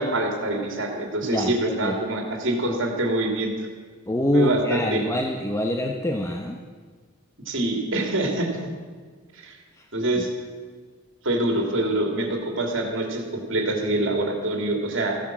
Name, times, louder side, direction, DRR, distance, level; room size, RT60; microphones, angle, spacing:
voice 1, 0.0-3.5 4.3-5.0 7.5-8.6 9.3-9.6 9.9-10.3 11.2-15.2, right 1 dB, 60° right, 3 dB, 2.7 m, -25 dB
voice 2, 1.2-1.9 4.1-6.6 9.8-9.9 10.2-10.3, left 1 dB, 15° left, 2 dB, 0.8 m, -25 dB
14.5 x 11.0 x 7.4 m, 1.5 s
head